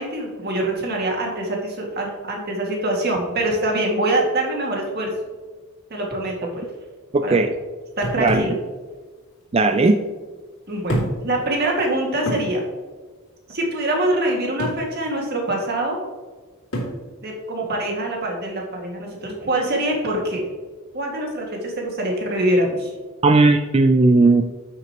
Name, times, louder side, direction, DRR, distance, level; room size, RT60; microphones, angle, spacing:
voice 1, 0.0-5.1 5.9-6.6 7.2-7.4 8.0-8.6 10.7-12.6 13.5-16.0 17.2-20.4 20.9-22.9, right 1 dB, 45° right, 0 dB, 2.1 m, -24 dB
voice 2, 7.1-7.5 8.2-8.5 9.5-10.0 23.2-24.4, right 3 dB, 25° right, 7 dB, 0.4 m, -16 dB
sound 1, 8.0-8.6 9.7-9.8 10.9-11.3 11.7-11.8 12.3-12.5 14.6-14.9 16.7-17.0, right 1 dB, 70° left, 2.6 m, -27 dB
9.5 x 7.8 x 3.0 m, 1.4 s
head